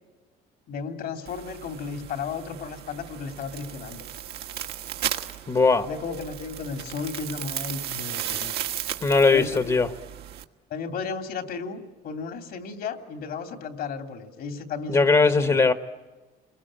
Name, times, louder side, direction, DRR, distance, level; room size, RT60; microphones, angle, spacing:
voice 1, 0.7-4.0 5.8-8.5 9.3-9.8 10.7-15.6, left 5 dB, 65° left, 7 dB, 2.9 m, -34 dB
sound 1, 1.3-10.4, right 11 dB, 75° right, 1.6 m, -35 dB
voice 2, 5.5-5.9 9.0-9.9 14.9-15.7, left 4 dB, 25° left, 10 dB, 1.2 m, -19 dB
29.0 x 21.5 x 8.8 m, 1.2 s
cardioid pair, 110°, 17 cm